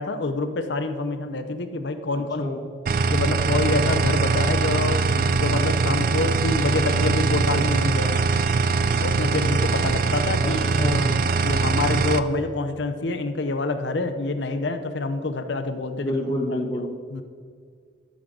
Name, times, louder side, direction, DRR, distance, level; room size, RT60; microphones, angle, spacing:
voice 1, 0.0-2.4 3.1-8.3 9.0-10.7 11.4-16.1 17.1-17.2, left 3 dB, 70° left, 8 dB, 0.7 m, -26 dB
voice 2, 2.1-2.6 10.4-11.3 16.0-16.9, left 1 dB, 20° left, -1 dB, 0.9 m, -28 dB
sound 1, 2.9-12.2, right 4 dB, 50° right, 0.4 m, -22 dB
12.5 x 6.3 x 3.8 m, 2.1 s
head